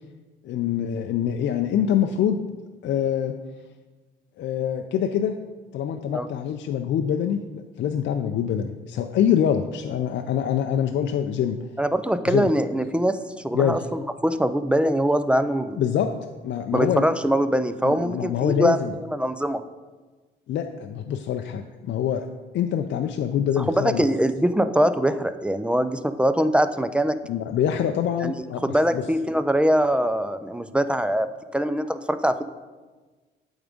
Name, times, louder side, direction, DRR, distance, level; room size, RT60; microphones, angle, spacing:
voice 1, 0.4-2.4 2.8-3.3 4.4-5.4 5.7-11.6 12.3-12.5 13.5-13.8 15.8-16.1 16.4-17.0 17.8-18.9 20.5-22.2 22.5-24.1 27.3-29.0, left 9 dB, 65° left, 5 dB, 0.4 m, -25 dB
voice 2, 11.8-15.8 16.7-18.8 19.1-19.6 23.6-27.2 28.2-32.4, equal, 5° right, 11 dB, 0.3 m, -23 dB
8.5 x 3.6 x 5.1 m, 1.3 s
cardioid pair, 90°, 20 cm